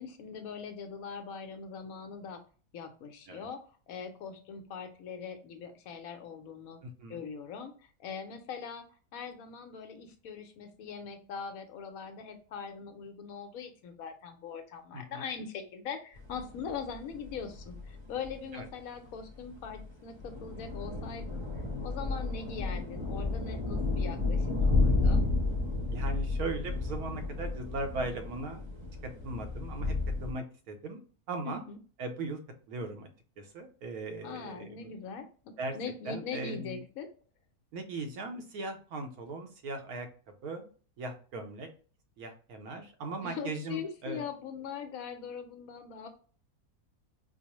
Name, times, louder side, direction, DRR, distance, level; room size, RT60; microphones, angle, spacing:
voice 1, 0.0-2.4 2.7-3.6 3.9-6.8 7.1-7.7 8.0-8.8 9.1-21.4 21.8-25.2 31.4-31.8 34.2-37.1 43.2-46.1, left 6 dB, 75° left, 7 dB, 1.0 m, -41 dB
voice 2, 6.8-7.2 14.9-15.2 18.5-18.7 25.9-28.7 29.2-29.9 30.2-31.0 31.3-31.6 32.0-32.4 32.7-33.1 33.4-34.9 35.6-35.8 36.0-36.8 37.7-40.1 40.4-40.7 41.0-41.7 42.2-44.2, right 2 dB, 80° right, 6 dB, 1.2 m, -38 dB
sound 1, 16.2-30.3, left 3 dB, 25° right, 0.7 m, -32 dB
4.5 x 2.0 x 2.9 m, 0.40 s
omnidirectional pair, 1.6 m